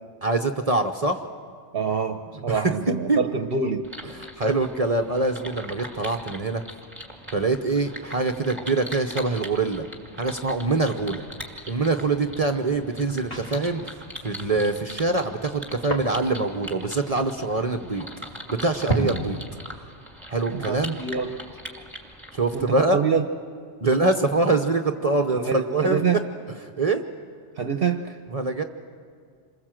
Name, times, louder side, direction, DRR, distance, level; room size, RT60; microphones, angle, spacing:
voice 1, 0.2-1.2 2.5-2.7 3.1-3.2 4.1-6.6 7.3-9.8 10.2-11.2 11.7-13.9 14.2-18.1 18.5-19.4 20.3-21.0 22.3-23.0 23.8-26.0 26.6-27.0 28.3-28.6, right 3 dB, 35° right, 6 dB, 0.9 m, -24 dB
voice 2, 1.7-3.9 20.5-21.4 22.5-23.3 25.3-26.3 27.6-28.2, right 6 dB, 55° right, 6 dB, 1.0 m, -26 dB
sound 1, 3.8-22.6, equal, 10° right, 2.3 m, -41 dB
sound 2, 11.3-18.9, right 1 dB, 30° left, 3.4 m, -38 dB
27.5 x 21.0 x 7.6 m, 2.1 s
omnidirectional pair, 1.2 m